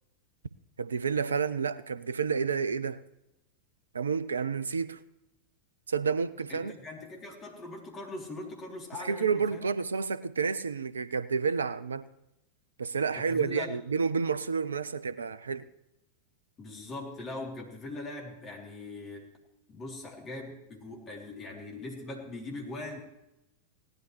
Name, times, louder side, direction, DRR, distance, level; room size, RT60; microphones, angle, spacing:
voice 1, 0.8-3.0 3.9-5.0 5.9-6.7 9.0-12.1 12.8-15.7, right 5 dB, 70° right, 0.5 m, -30 dB
voice 2, 6.5-9.7 13.1-13.7 16.6-19.3 19.7-23.0, left 2 dB, 25° left, 3.4 m, -41 dB
17.0 x 12.0 x 3.3 m
figure-of-eight pair, 90°, 0 cm